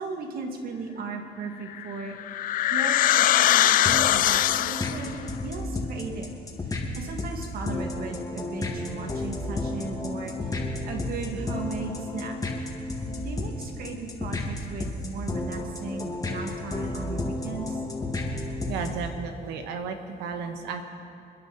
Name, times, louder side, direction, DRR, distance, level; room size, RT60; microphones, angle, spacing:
voice 1, 0.0-2.2 2.7-5.1 5.4-6.3 6.6-12.4 13.2-17.8, right 4 dB, 60° right, 2 dB, 2.4 m, -36 dB
sound 1, 1.7-5.1, left 13 dB, 55° left, 0.4 m, -22 dB
sound 2, 3.9-19.1, left 2 dB, 20° left, 2.3 m, -32 dB
voice 2, 18.7-20.8, right 5 dB, 90° right, 6 dB, 1.5 m, -33 dB
29.0 x 10.5 x 4.3 m, 2.4 s
cardioid pair, 110°, 17 cm